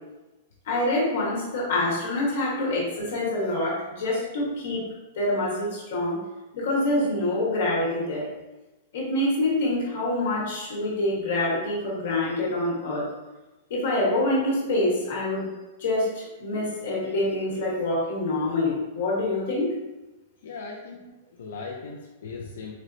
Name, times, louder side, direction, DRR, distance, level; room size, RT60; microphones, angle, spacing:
voice 1, 0.7-4.8 5.1-6.2 6.5-8.3 8.9-13.0 13.7-15.4 15.8-19.7, left 1 dB, 60° left, -5 dB, 1.2 m, -26 dB
voice 2, 20.4-22.8, left 4 dB, 80° left, -1 dB, 0.4 m, -38 dB
4.2 x 2.0 x 2.5 m, 1.1 s
supercardioid pair, 175°, 0 cm